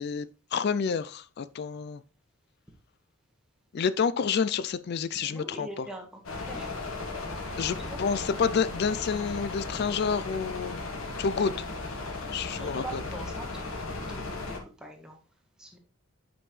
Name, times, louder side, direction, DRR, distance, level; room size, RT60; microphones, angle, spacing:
voice 1, 0.0-2.0 3.7-5.9 7.6-10.8 11.2-11.5 12.3-13.0, left 6 dB, 50° left, 0.3 m, -29 dB
voice 2, 5.2-6.1 6.4-8.0 12.5-13.8 14.1-15.2 15.6-15.8, right 1 dB, 5° right, 1.4 m, -44 dB
sound 1, 6.2-14.6, left 3 dB, 70° left, 1.5 m, -36 dB
8.5 x 5.3 x 3.2 m
head